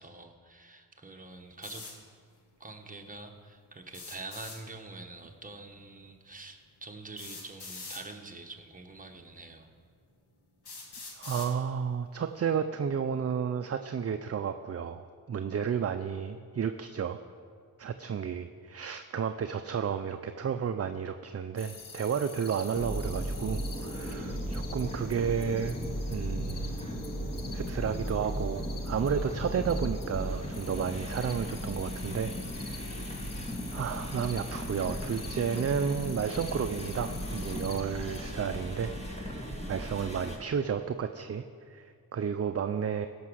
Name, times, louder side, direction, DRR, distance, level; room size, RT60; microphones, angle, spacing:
voice 1, 0.0-1.8 2.6-9.7 24.1-24.2, right 3 dB, 20° right, 3 dB, 1.3 m, -46 dB
sound 1, 1.6-2.0 3.9-4.6 6.0-6.1 7.2-8.0 9.0-9.1 9.8-9.9 10.7-11.5, left 3 dB, 80° left, 2.1 m, -43 dB
voice 2, 11.1-17.2 17.8-25.8 26.1-26.8 27.5-43.1, right 7 dB, 40° right, 8 dB, 0.5 m, -32 dB
sound 2, 21.6-38.3, left 5 dB, 55° left, 1.1 m, -47 dB
sound 3, 22.7-40.4, equal, 15° left, 1.8 m, -36 dB
16.5 x 6.1 x 6.3 m, 2.1 s
cardioid pair, 75°, 39 cm